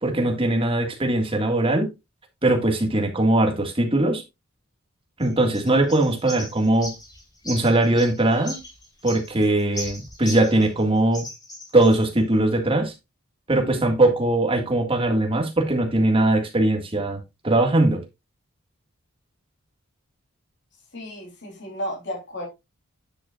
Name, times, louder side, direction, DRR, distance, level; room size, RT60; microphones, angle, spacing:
voice 1, 0.0-1.9 2.4-4.2 5.2-6.9 7.5-8.6 9.0-11.3 11.7-12.9 13.5-18.0, right 2 dB, 25° right, 1.8 m, -20 dB
sound 1, 5.2-10.8 11.1-12.0, left 1 dB, 20° left, 3.8 m, -38 dB
voice 2, 20.9-22.5, equal, 55° left, 3.3 m, -33 dB
9.4 x 8.0 x 2.4 m
head